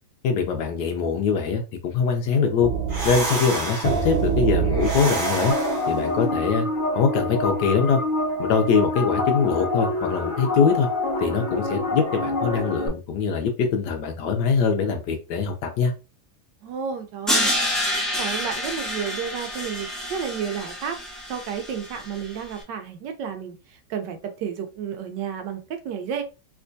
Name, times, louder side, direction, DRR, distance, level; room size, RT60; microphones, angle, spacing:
voice 1, 0.2-2.7 3.0-5.5 5.9-6.7 6.9-8.0 8.4-10.9 11.2-15.9, left 5 dB, 75° left, 1.2 m, -23 dB
sound 1, 2.6-6.1, right 5 dB, 40° right, 0.8 m, -25 dB
sound 2, 5.5-12.9, left 2 dB, 45° left, 0.6 m, -26 dB
voice 2, 16.6-17.5 18.2-21.0 21.3-26.2, right 7 dB, 80° right, 1.3 m, -31 dB
Crash cymbal, 17.3-22.3, equal, ahead, 0.5 m, -28 dB
3.4 x 3.0 x 2.6 m
omnidirectional pair, 1.9 m